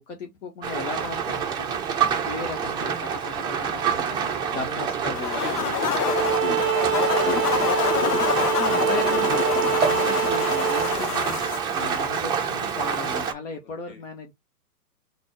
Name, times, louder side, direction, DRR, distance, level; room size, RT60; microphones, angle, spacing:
voice 1, 0.0-1.7 2.2-4.2 4.5-5.4 8.5-14.3, left 4 dB, 50° left, 1.5 m, -36 dB
Rain, 0.6-13.3, right 7 dB, 10° right, 0.6 m, -27 dB
voice 2, 1.6-2.2 2.6-2.9 4.5-4.7 5.0-8.8 11.2-11.4 13.9-14.0, left 3 dB, 25° left, 2.2 m, -41 dB
sound 1, 5.1-11.6, left 8 dB, 75° left, 0.7 m, -26 dB
Bowed string instrument, 5.9-11.0, right 13 dB, 60° right, 0.5 m, -25 dB
4.2 x 2.6 x 4.6 m
figure-of-eight pair, 120°, 47 cm